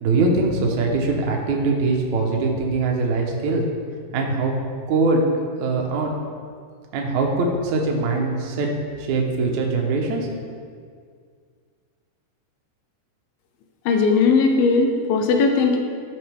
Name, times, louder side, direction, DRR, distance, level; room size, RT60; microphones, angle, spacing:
voice 1, 0.0-3.7 4.1-4.5 4.9-5.2 5.6-6.1 6.9-8.7 9.0-10.3, right 3 dB, 65° right, 0 dB, 2.2 m, -22 dB
voice 2, 13.9-15.8, left 4 dB, 85° left, 4 dB, 2.5 m, -18 dB
14.0 x 5.8 x 3.5 m, 2.1 s
omnidirectional pair, 4.1 m